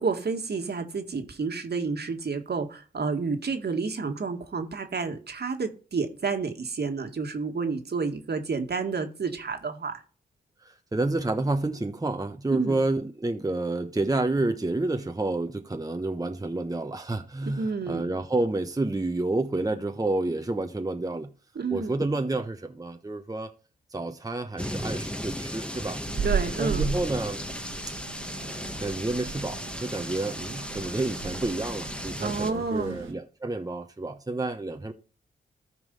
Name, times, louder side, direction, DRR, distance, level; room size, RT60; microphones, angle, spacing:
voice 1, 0.0-9.9 12.5-12.8 17.6-18.1 21.6-22.0 26.2-26.8 32.2-33.0, right 4 dB, 55° right, 2.0 m, -30 dB
voice 2, 10.6-21.3 21.7-23.5 23.9-26.0 26.6-27.5 28.8-34.9, right 2 dB, 15° right, 1.1 m, -29 dB
sound 1, 24.6-32.5, equal, 5° left, 1.4 m, -36 dB
sound 2, 26.1-33.1, right 5 dB, 80° right, 2.0 m, -35 dB
13.5 x 4.7 x 5.5 m
supercardioid pair, 45°, 21 cm